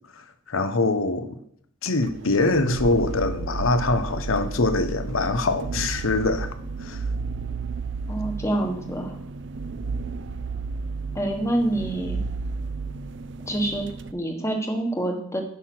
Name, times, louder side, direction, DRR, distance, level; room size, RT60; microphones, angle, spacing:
voice 1, 0.5-1.4 1.8-6.5 6.8-7.0, left 2 dB, 80° left, 10 dB, 0.9 m, -23 dB
sound 1, 2.0-14.1, right 4 dB, 60° right, 0.5 m, -32 dB
voice 2, 8.1-9.2 11.1-12.2 13.5-13.8 14.1-15.4, right 1 dB, 15° left, 4 dB, 1.3 m, -26 dB
10.5 x 5.8 x 6.0 m, 0.69 s
head